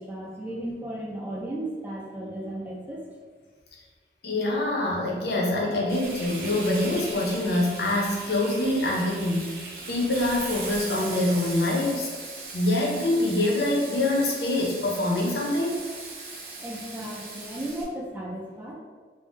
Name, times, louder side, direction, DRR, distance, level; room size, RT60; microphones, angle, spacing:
voice 1, 0.0-3.0 16.6-18.7, right 1 dB, 10° right, -4 dB, 0.4 m, -35 dB
voice 2, 4.2-12.1 12.5-15.8, left 1 dB, 65° left, -3 dB, 0.6 m, -25 dB
Frying (food), 5.9-17.8, right 3 dB, 55° right, 0.6 m, -39 dB
2.6 x 2.0 x 3.5 m, 1.5 s
head